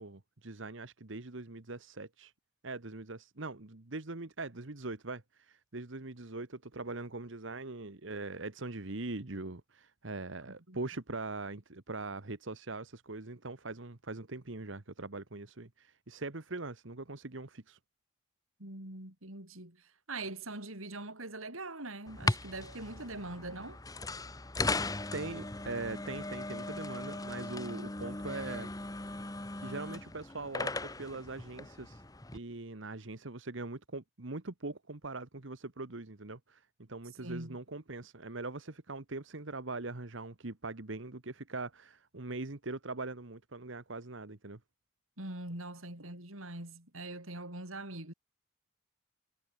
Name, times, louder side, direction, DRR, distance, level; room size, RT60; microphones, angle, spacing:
voice 1, 0.0-2.3 2.6-17.8 25.1-28.7 29.6-32.0 32.3-44.6, right 3 dB, 70° right, 1.4 m, -42 dB
voice 2, 10.5-10.8 18.6-23.8 37.2-37.6 45.2-48.1, right 2 dB, 85° right, 6.7 m, -43 dB
sound 1, 22.1-32.4, left 2 dB, 15° left, 1.2 m, -38 dB
head